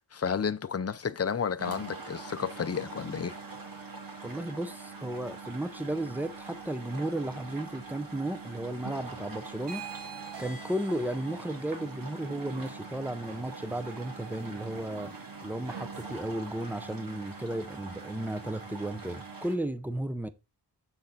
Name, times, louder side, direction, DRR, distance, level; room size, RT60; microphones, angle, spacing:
voice 1, 0.1-3.4, left 6 dB, 35° left, 0.6 m, -31 dB
sound 1, 1.6-19.6, right 4 dB, 55° right, 2.3 m, -44 dB
voice 2, 4.2-9.9 10.4-15.1 15.4-20.3, right 1 dB, 5° right, 0.7 m, -34 dB
sound 2, 9.6-16.2, right 5 dB, 75° right, 1.4 m, -47 dB
7.5 x 6.6 x 3.9 m
wide cardioid pair, 95°, 42 cm